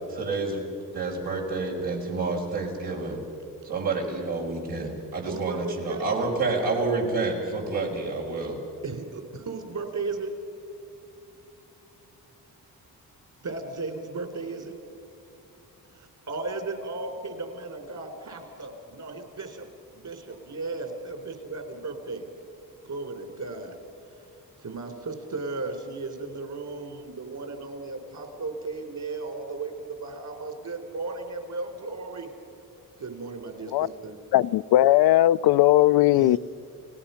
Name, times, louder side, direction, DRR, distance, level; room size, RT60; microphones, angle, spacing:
voice 1, 0.1-0.6 0.9-3.2 3.6-8.6 20.3-20.6, right 3 dB, 85° right, -2 dB, 5.6 m, -29 dB
voice 2, 5.3-6.1 8.8-10.3 13.4-14.8 15.9-19.6 19.9-22.2 22.8-23.8 24.6-32.3 33.0-34.2 36.1-36.4, right 3 dB, 55° right, 5 dB, 4.1 m, -35 dB
voice 3, 34.3-36.4, left 14 dB, 85° left, 17 dB, 0.5 m, -18 dB
30.0 x 19.0 x 5.8 m, 2.7 s
cardioid pair, 75°, 37 cm